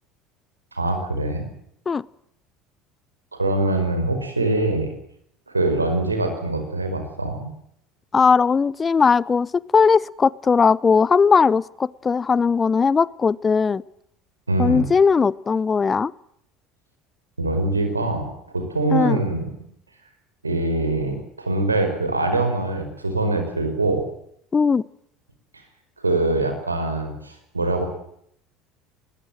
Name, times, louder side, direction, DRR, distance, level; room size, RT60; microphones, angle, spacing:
voice 1, 0.7-1.5 3.3-4.9 5.5-7.5 14.5-14.9 17.4-19.5 20.4-24.1 26.0-27.8, right 2 dB, 90° right, 6 dB, 4.9 m, -23 dB
voice 2, 8.1-13.8 14.6-16.1 18.9-19.2 24.5-24.8, left 5 dB, 25° left, 23 dB, 0.8 m, -18 dB
21.0 x 21.0 x 7.6 m, 0.71 s
figure-of-eight pair, 65°, 0 cm